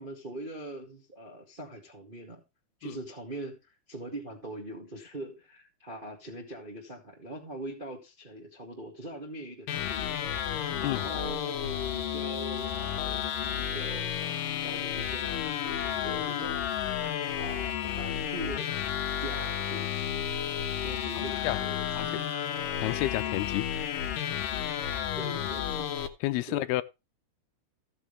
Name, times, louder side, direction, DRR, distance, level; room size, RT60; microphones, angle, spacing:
voice 1, 0.0-2.4 2.8-10.1 10.8-16.6 17.3-18.7 19.2-20.3 20.8-22.2 25.1-25.9 26.5-26.7, right 1 dB, 30° right, 0.9 m, -42 dB
sound 1, 9.7-26.1, left 9 dB, 70° left, 2.5 m, -32 dB
voice 2, 22.8-24.1 26.2-26.8, left 17 dB, 85° left, 2.6 m, -31 dB
15.0 x 6.7 x 3.4 m
omnidirectional pair, 4.5 m